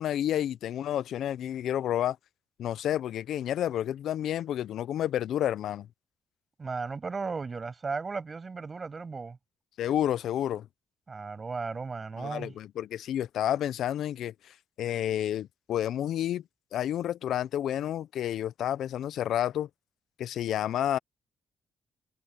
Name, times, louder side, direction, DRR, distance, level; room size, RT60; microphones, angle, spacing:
voice 1, 0.0-2.2 2.6-5.9 9.8-10.7 12.2-14.3 14.8-16.4 16.7-19.7 20.2-21.0, left 11 dB, 75° left, 0.6 m, -30 dB
voice 2, 6.6-9.4 11.1-12.5, right 4 dB, 30° right, 6.9 m, -35 dB
cardioid pair, 90°, 0 cm